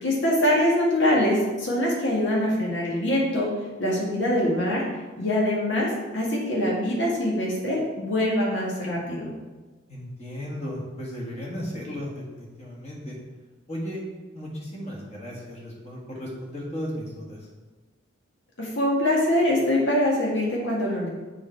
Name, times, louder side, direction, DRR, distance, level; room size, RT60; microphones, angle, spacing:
voice 1, 0.0-3.5 3.8-4.8 5.2-5.9 6.1-9.3 18.6-21.1, left 1 dB, 75° left, -3 dB, 2.0 m, -23 dB
voice 2, 9.9-13.2 13.7-14.0 14.3-17.5, equal, 35° left, -3 dB, 1.7 m, -35 dB
7.1 x 5.2 x 4.6 m, 1.3 s
head